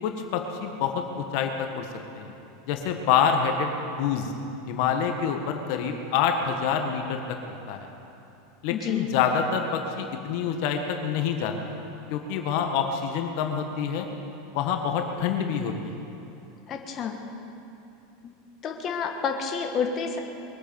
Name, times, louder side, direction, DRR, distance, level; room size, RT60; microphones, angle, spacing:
voice 1, 0.0-1.8 2.1-2.3 2.7-3.7 4.0-4.3 4.7-7.2 7.5-7.9 8.6-11.5 12.1-14.1 14.5-15.7, left 7 dB, 60° left, 4 dB, 1.6 m, -26 dB
voice 2, 8.7-9.1 16.7-17.2 18.2-18.3 18.6-20.2, left 6 dB, 40° left, 3 dB, 1.5 m, -29 dB
22.0 x 9.0 x 7.1 m, 2.8 s
hypercardioid pair, 90°, 0 cm